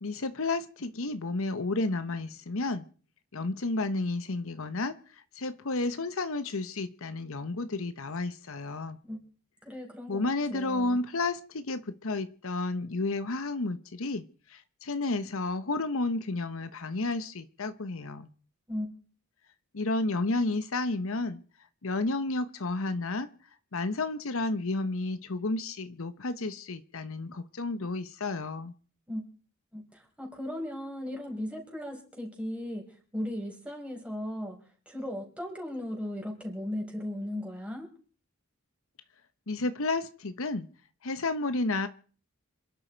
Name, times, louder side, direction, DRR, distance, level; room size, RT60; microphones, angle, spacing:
voice 1, 0.0-2.8 3.3-5.0 5.3-9.0 10.1-14.2 14.5-18.3 19.7-21.4 21.8-23.3 23.7-28.7 39.5-40.7 41.0-41.9, left 2 dB, 65° left, 12 dB, 1.0 m, -31 dB
voice 2, 9.6-11.0 18.7-18.9 29.1-29.2 29.7-32.9 33.1-34.6 34.8-37.9, left 1 dB, 5° right, 1 dB, 5.0 m, -37 dB
27.0 x 11.5 x 4.6 m, 0.42 s
head